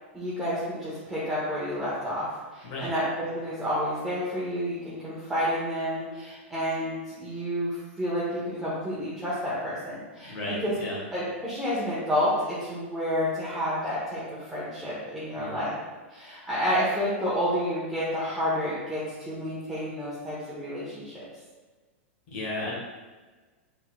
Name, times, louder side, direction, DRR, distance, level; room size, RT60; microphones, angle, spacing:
voice 1, 0.1-10.7 11.1-15.8 16.1-21.2, equal, 5° right, -11 dB, 1.1 m, -30 dB
voice 2, 10.2-11.0 15.4-15.6 22.3-22.7, left 2 dB, 60° left, -6 dB, 1.5 m, -34 dB
4.1 x 3.7 x 2.3 m, 1.3 s
hypercardioid pair, 110°, 7 cm